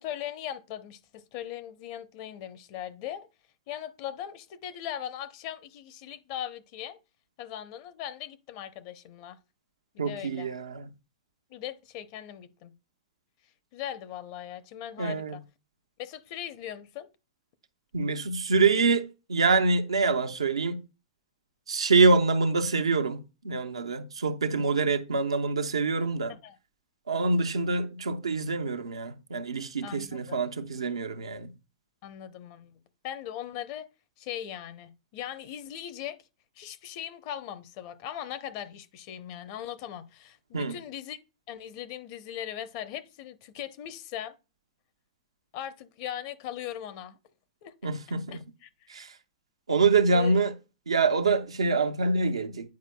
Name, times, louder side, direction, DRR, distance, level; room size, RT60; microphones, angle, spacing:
voice 1, 0.0-3.3 3.7-7.0 7.4-9.4 9.9-10.5 11.5-12.7 13.7-15.4 16.0-17.1 26.3-26.5 29.8-30.4 32.0-32.7 33.0-33.9 34.2-36.2 36.6-41.2 41.5-44.3 45.5-47.2 47.6-47.7 48.3-48.7 50.1-50.4, left 11 dB, 50° left, 0.6 m, -39 dB
voice 2, 10.0-10.9 15.0-15.4 17.9-20.8 21.7-26.3 27.1-31.5 40.5-40.8 47.8-48.4 48.9-49.1 49.7-50.5 50.9-52.7, right 4 dB, 85° right, 0.6 m, -25 dB
9.4 x 4.6 x 2.2 m
hypercardioid pair, 105°, 3 cm